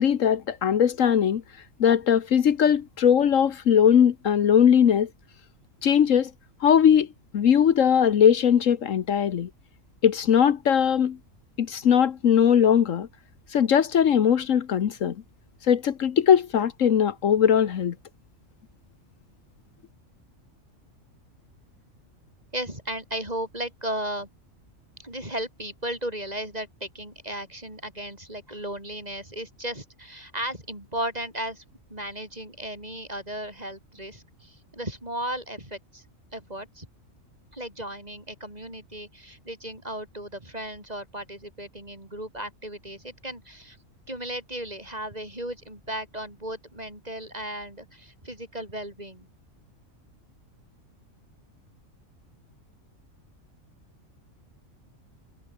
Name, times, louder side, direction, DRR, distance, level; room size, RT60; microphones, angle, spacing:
voice 1, 0.0-1.4 1.8-5.1 5.8-6.3 6.6-7.1 7.3-9.5 10.0-11.2 11.6-13.1 13.5-15.2 15.7-17.9, left 8 dB, 70° left, 1.4 m, -20 dB
voice 2, 22.5-24.3 25.0-31.6 31.9-36.0 36.3-36.9 37.5-43.8 44.1-49.3, right 1 dB, 30° right, 8.0 m, -35 dB
omnidirectional pair, 1.4 m